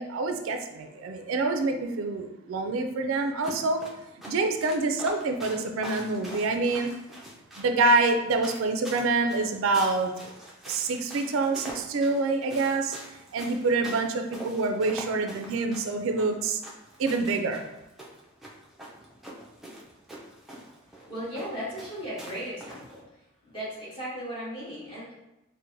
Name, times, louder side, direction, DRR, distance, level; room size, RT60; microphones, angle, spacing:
voice 1, 0.0-3.8 4.3-6.9 7.6-10.3 10.7-13.0 13.3-16.6 17.0-17.6, right 3 dB, 75° right, 5 dB, 0.3 m, -26 dB
sound 1, 3.4-23.0, right 1 dB, ahead, 0.4 m, -44 dB
voice 2, 21.1-23.0 23.5-25.1, equal, 25° left, -8 dB, 1.3 m, -36 dB
4.4 x 2.1 x 2.6 m, 0.91 s
head